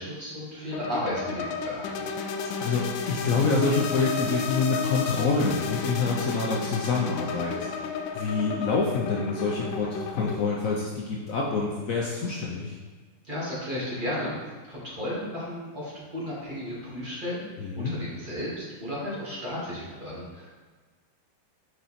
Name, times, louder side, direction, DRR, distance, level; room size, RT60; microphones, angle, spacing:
voice 1, 0.0-1.9 13.3-14.3 14.7-20.5, equal, 25° right, -8 dB, 1.9 m, -34 dB
sound 1, 0.7-10.4, left 5 dB, 75° left, 1.2 m, -32 dB
voice 2, 2.6-7.7 8.1-12.8 17.6-18.0, left 4 dB, 90° left, -2 dB, 0.7 m, -27 dB
6.5 x 4.3 x 4.2 m, 1.4 s
omnidirectional pair, 2.4 m